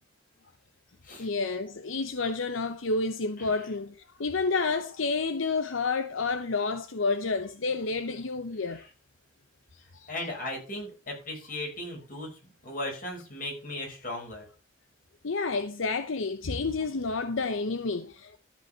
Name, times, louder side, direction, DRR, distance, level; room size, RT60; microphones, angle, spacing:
voice 1, 1.2-8.8 9.7-10.1 15.2-18.4, left 4 dB, 80° left, 0.7 m, -30 dB
voice 2, 10.1-14.4, left 1 dB, 45° left, 5.3 m, -37 dB
13.0 x 5.4 x 5.5 m
head